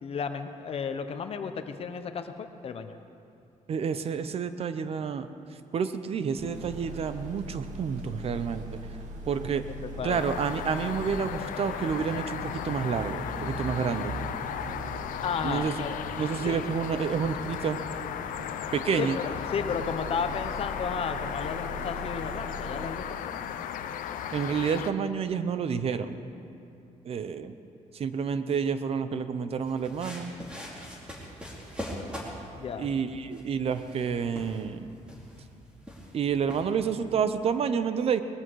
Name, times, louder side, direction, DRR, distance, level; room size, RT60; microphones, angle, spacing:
voice 1, 0.0-3.0 9.7-10.2 15.2-16.0 16.4-16.6 19.0-19.2 19.5-23.4 32.5-32.9, left 6 dB, 45° left, 8 dB, 0.9 m, -33 dB
voice 2, 3.7-5.3 5.7-8.6 9.3-9.6 10.0-14.1 15.4-15.7 16.2-17.8 18.7-19.2 24.3-26.2 27.0-27.5 27.9-30.3 32.8-34.9 36.1-38.2, right 6 dB, 45° right, 11 dB, 0.7 m, -29 dB
sound 1, 6.4-22.9, right 2 dB, 65° right, 1.8 m, -41 dB
sound 2, 10.1-24.9, left 9 dB, 80° left, 0.7 m, -36 dB
sound 3, 29.6-37.1, equal, 5° right, 2.7 m, -43 dB
20.0 x 14.0 x 4.7 m, 2.6 s
cardioid pair, 140°, 14 cm